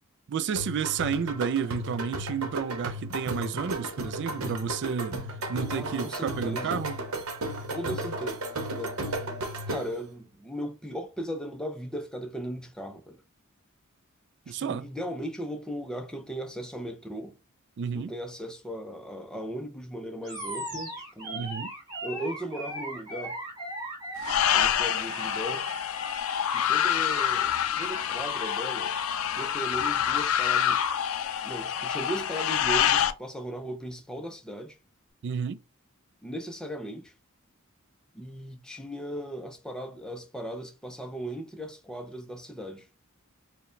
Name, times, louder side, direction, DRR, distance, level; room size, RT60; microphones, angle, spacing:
voice 1, 0.3-5.2 5.5-7.0 14.5-14.9 17.8-18.1 21.3-21.7 35.2-35.6, right 7 dB, 55° right, 0.3 m, -31 dB
sound 1, 0.6-10.1, right 1 dB, 80° right, 0.9 m, -34 dB
voice 2, 5.7-6.8 7.5-8.4 8.8-9.3 9.7-13.2 14.5-17.4 17.9-21.5 22.0-23.4 24.5-25.8 26.5-28.9 29.3-30.8 31.4-34.8 36.2-37.1 38.1-42.9, right 1 dB, 5° left, 0.5 m, -37 dB
Animal, 20.2-28.2, right 1 dB, 20° right, 2.2 m, -39 dB
sound 2, 24.2-33.1, left 9 dB, 65° left, 0.4 m, -27 dB
4.6 x 2.2 x 3.1 m
head